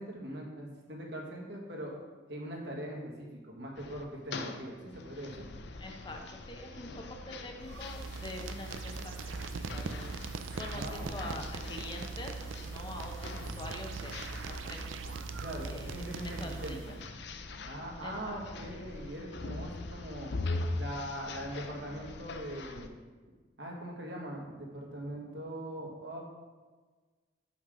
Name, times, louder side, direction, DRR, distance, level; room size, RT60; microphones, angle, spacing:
voice 1, 0.0-2.0 2.3-5.4 10.7-11.4 15.4-16.9 17.6-20.3 20.8-22.9 23.6-26.2, right 1 dB, 60° right, -1 dB, 1.6 m, -41 dB
sound 1, 3.7-22.9, left 3 dB, 60° left, 0.5 m, -43 dB
voice 2, 5.8-10.1 10.6-15.0 15.6-16.8 18.0-18.4 18.7-18.8, left 1 dB, 25° left, 2 dB, 0.9 m, -45 dB
sound 2, 7.6-17.1, right 4 dB, 85° right, 0.5 m, -41 dB
5.9 x 5.3 x 6.2 m, 1.4 s
head